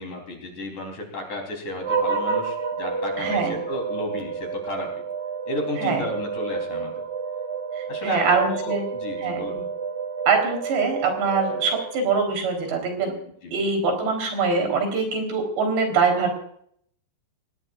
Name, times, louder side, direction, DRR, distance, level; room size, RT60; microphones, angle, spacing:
voice 1, 0.0-4.9 5.5-7.0 7.9-9.7 13.4-13.5, left 2 dB, 50° left, 1 dB, 5.0 m, -33 dB
sound 1, 1.8-12.4, right 5 dB, 55° right, 0.7 m, -30 dB
voice 2, 3.2-3.6 5.8-6.0 7.8-8.8 9.2-9.4 10.3-13.1 13.5-16.3, right 4 dB, 80° right, 3 dB, 6.1 m, -23 dB
27.0 x 18.0 x 2.5 m, 0.67 s
omnidirectional pair, 4.8 m